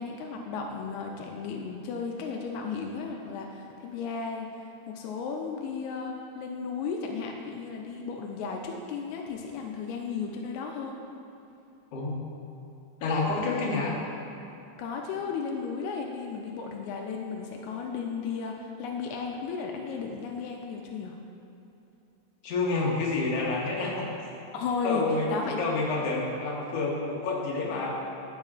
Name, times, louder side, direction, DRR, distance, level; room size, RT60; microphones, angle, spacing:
voice 1, 0.0-4.5 4.9-11.0 13.3-13.8 14.8-21.2 24.5-25.0 25.3-25.6, left 5 dB, 85° left, 1 dB, 2.0 m, -34 dB
voice 2, 11.9-12.3 13.0-14.0 22.4-24.1 24.8-27.9, left 3 dB, 65° left, -3 dB, 1.9 m, -28 dB
13.0 x 4.8 x 2.4 m, 2.9 s
omnidirectional pair, 3.3 m